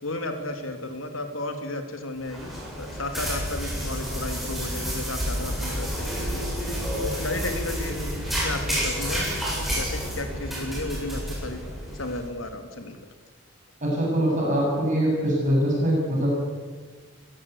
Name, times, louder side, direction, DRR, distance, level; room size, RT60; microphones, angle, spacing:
voice 1, 0.0-2.5 2.8-6.7 7.0-8.0 8.3-9.3 9.6-11.6 11.9-13.0, left 2 dB, 85° left, 6 dB, 3.0 m, -33 dB
sound 1, 2.2-12.2, equal, ahead, 7.9 m, -30 dB
voice 2, 13.8-16.3, equal, 40° right, -3 dB, 8.0 m, -23 dB
23.5 x 16.0 x 8.4 m, 1.4 s
head